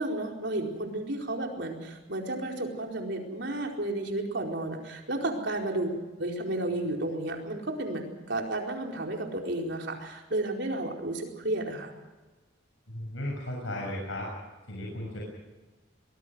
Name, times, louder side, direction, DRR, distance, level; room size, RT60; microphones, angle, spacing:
voice 1, 0.0-5.9 6.2-11.9, right 1 dB, 60° right, 1 dB, 4.6 m, -32 dB
voice 2, 12.9-14.3 14.7-15.2, left 1 dB, 75° left, -2 dB, 6.9 m, -35 dB
24.0 x 21.0 x 6.4 m, 1.2 s
head